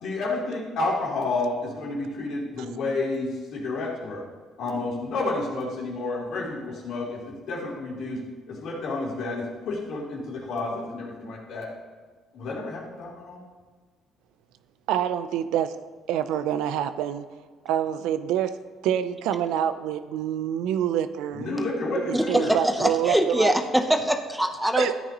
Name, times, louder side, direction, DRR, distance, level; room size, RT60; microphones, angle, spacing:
voice 1, 0.0-4.2 4.6-11.7 12.3-13.4 21.4-22.5, left 2 dB, 70° left, -4 dB, 3.2 m, -30 dB
voice 2, 14.9-15.8 16.1-17.2 17.6-18.5 18.8-21.6 22.0-23.5 24.8-24.9, right 10 dB, 90° right, 11 dB, 0.6 m, -26 dB
voice 3, 22.1-24.9, equal, 5° right, 5 dB, 0.8 m, -23 dB
14.0 x 9.4 x 3.0 m, 1.4 s
cardioid pair, 100°, 0 cm